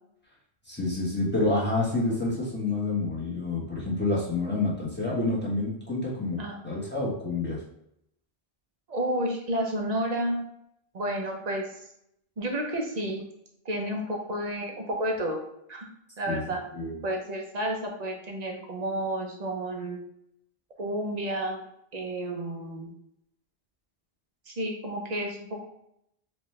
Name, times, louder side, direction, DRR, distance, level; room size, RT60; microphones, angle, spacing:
voice 1, 0.7-7.6 16.3-16.4 16.7-17.0, left 2 dB, 10° left, -6 dB, 1.1 m, -28 dB
voice 2, 8.9-10.4 10.9-11.7 12.4-13.2 13.6-15.4 15.7-15.9 16.2-16.6 17.0-20.0 20.8-21.6 21.9-22.9 24.5-25.7, right 1 dB, 45° right, 2 dB, 0.8 m, -31 dB
4.2 x 2.6 x 3.2 m, 0.77 s
omnidirectional pair, 1.0 m